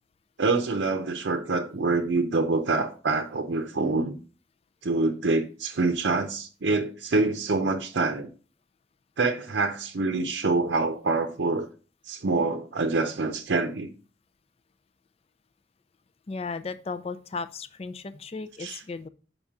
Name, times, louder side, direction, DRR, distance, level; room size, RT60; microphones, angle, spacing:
voice 1, 0.4-4.2 4.8-8.3 9.2-11.7 12.1-13.9 18.6-18.8, right 3 dB, 75° right, 0.6 m, -26 dB
voice 2, 16.3-19.1, left 4 dB, 35° left, 0.4 m, -35 dB
7.1 x 5.3 x 3.5 m
head